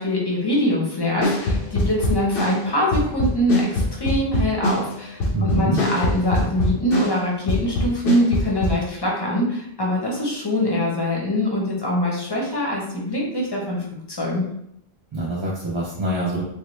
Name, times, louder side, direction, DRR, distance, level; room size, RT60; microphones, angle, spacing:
voice 1, 0.0-13.8 14.2-14.5, left 1 dB, 25° left, -3 dB, 0.8 m, -23 dB
sound 1, 1.2-7.2 7.5-8.8, left 1 dB, 65° left, 0.9 m, -23 dB
voice 2, 5.3-5.8 15.1-16.4, right 2 dB, 40° right, -6 dB, 0.5 m, -24 dB
3.5 x 2.1 x 3.1 m, 0.76 s
omnidirectional pair, 1.0 m